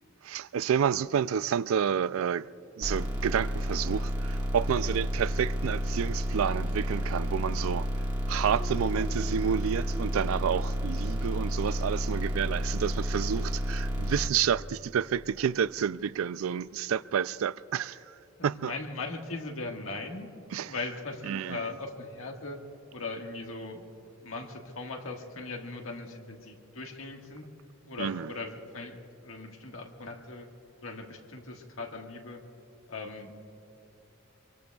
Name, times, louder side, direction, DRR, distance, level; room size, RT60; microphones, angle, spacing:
voice 1, 0.2-2.5 2.8-7.9 8.3-18.7 20.5-20.7 21.3-21.6 28.0-28.3, right 8 dB, 85° right, 0.4 m, -30 dB
sound 1, 2.8-14.3, equal, 25° right, 1.7 m, -31 dB
Guitar, 8.6-13.2, equal, 5° right, 1.6 m, -48 dB
voice 2, 18.4-20.3 20.7-22.6 22.9-23.8 24.2-27.4 27.8-30.5 30.8-32.4 32.9-33.3, left 3 dB, 85° left, 1.6 m, -39 dB
25.5 x 23.5 x 2.3 m
head